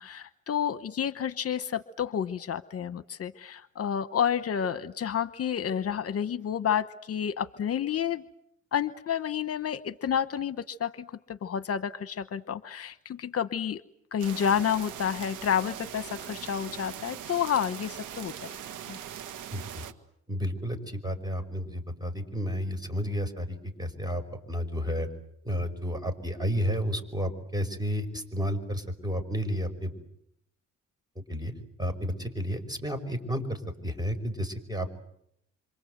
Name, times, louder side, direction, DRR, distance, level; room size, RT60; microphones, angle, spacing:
voice 1, 0.0-8.2 8.7-13.8 14.1-18.5 18.9-19.0, left 8 dB, 50° left, 13 dB, 1.0 m, -30 dB
sound 1, 14.2-19.9, right 10 dB, 85° right, 1.8 m, -41 dB
voice 2, 19.5-19.8 20.3-24.2 24.5-25.1 25.4-29.9 31.3-31.5 31.8-34.9, equal, 15° right, 7 dB, 5.5 m, -31 dB
27.5 x 25.5 x 8.0 m, 0.76 s
cardioid pair, 90°, 30 cm